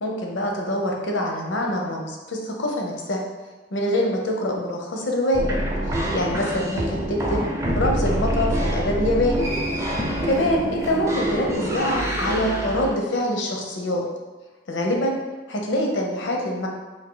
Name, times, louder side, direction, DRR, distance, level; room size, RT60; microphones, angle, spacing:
voice 1, 0.0-3.2 3.7-5.5 5.9-7.4 7.8-9.4 10.2-14.0 14.7-15.2 15.5-16.7, left 1 dB, 80° left, 1 dB, 0.7 m, -25 dB
sound 1, 5.3-12.9, right 1 dB, 15° right, 0.5 m, -26 dB
3.5 x 2.5 x 3.8 m, 1.2 s
head